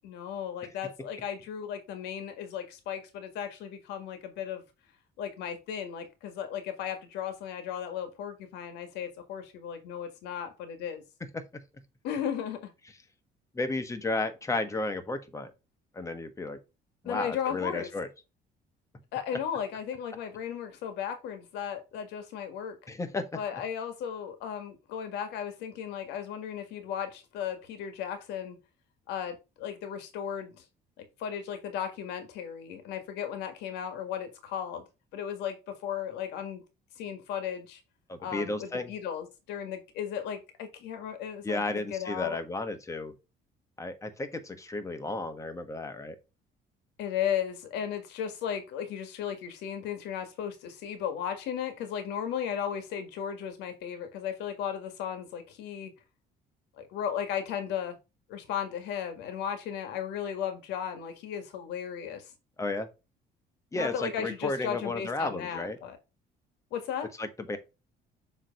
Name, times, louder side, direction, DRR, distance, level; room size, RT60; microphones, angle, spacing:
voice 1, 0.0-4.6 5.2-11.0 12.0-12.7 17.0-17.9 19.1-22.7 23.3-28.6 29.1-30.6 31.0-34.8 35.1-36.6 37.0-37.8 38.2-42.4 47.0-55.9 56.8-58.0 58.3-62.3 63.7-66.0 66.7-67.1, left 8 dB, 90° left, 1.7 m, -35 dB
voice 2, 13.5-15.5 15.9-16.6 17.0-18.1 22.9-23.4 38.1-38.9 41.4-43.1 43.8-46.2 62.6-62.9 63.7-65.8 67.2-67.6, left 2 dB, 20° left, 1.3 m, -33 dB
7.4 x 3.4 x 5.2 m
cardioid pair, 110°, 17 cm